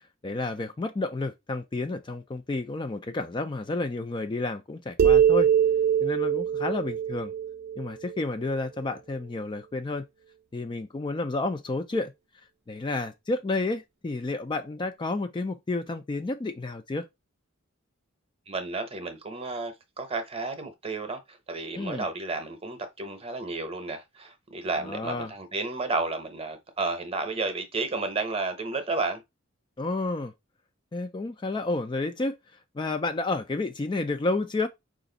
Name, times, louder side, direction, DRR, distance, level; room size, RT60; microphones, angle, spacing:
voice 1, 0.2-5.5 6.0-7.3 7.8-10.0 10.5-12.1 12.7-17.1 21.7-22.1 24.8-25.3 29.8-30.3 30.9-32.4 32.7-34.7, left 2 dB, 25° left, 0.4 m, -30 dB
sound 1, 5.0-8.5, right 8 dB, 55° right, 0.4 m, -23 dB
voice 2, 18.5-29.2, right 3 dB, 30° right, 0.8 m, -32 dB
5.0 x 2.5 x 3.8 m
head